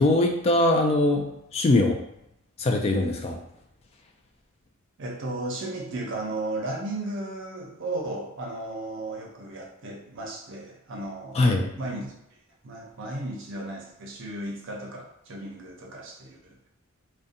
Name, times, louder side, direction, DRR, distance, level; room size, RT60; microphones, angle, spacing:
voice 1, 0.0-2.0 2.6-3.4 11.3-11.7, left 2 dB, 30° left, 3 dB, 0.3 m, -22 dB
voice 2, 5.0-11.4 11.8-12.1 12.6-16.7, right 2 dB, 65° right, -1 dB, 0.6 m, -35 dB
2.6 x 2.2 x 2.6 m, 0.80 s
head